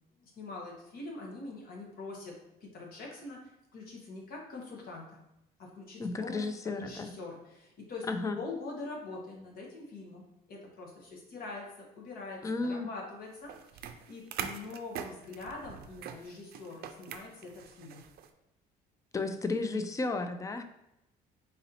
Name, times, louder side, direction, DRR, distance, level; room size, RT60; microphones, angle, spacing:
voice 1, 0.2-2.4 2.6-5.2 5.6-6.5 6.7-8.1 8.4-18.0, left 3 dB, 60° left, -1 dB, 1.3 m, -44 dB
voice 2, 6.0-7.1 8.1-8.4 12.4-12.9 19.1-20.6, left 3 dB, 20° left, 8 dB, 0.4 m, -33 dB
sound 1, 13.4-18.3, right 8 dB, 65° right, 0.4 m, -43 dB
4.0 x 2.7 x 4.1 m, 0.86 s
cardioid pair, 110°, 17 cm